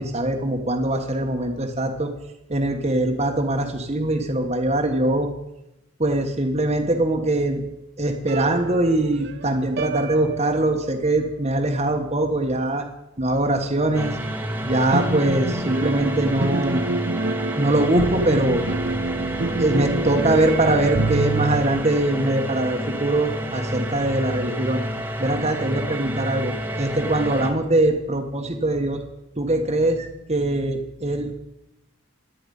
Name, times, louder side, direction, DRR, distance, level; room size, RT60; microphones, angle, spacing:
voice 1, 0.0-2.1 2.5-5.3 6.0-7.6 8.0-12.9 13.2-14.1 14.6-16.8 17.5-18.7 19.6-24.8 25.2-29.0 29.4-31.3, right 1 dB, 30° right, 3 dB, 1.4 m, -22 dB
sound 1, 8.3-11.1 14.6-21.6, right 2 dB, 50° right, 0.7 m, -27 dB
sound 2, 13.9-27.5, right 1 dB, 10° right, 1.4 m, -30 dB
25.5 x 9.2 x 5.5 m, 0.89 s
head